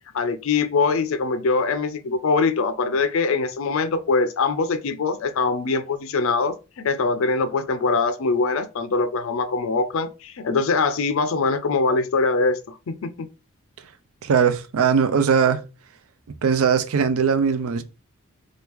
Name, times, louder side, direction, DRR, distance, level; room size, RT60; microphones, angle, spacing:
voice 1, 0.1-13.3, left 4 dB, 65° left, 0.4 m, -23 dB
voice 2, 14.2-15.6 16.4-17.8, right 6 dB, 70° right, 0.4 m, -20 dB
2.9 x 2.3 x 3.4 m
head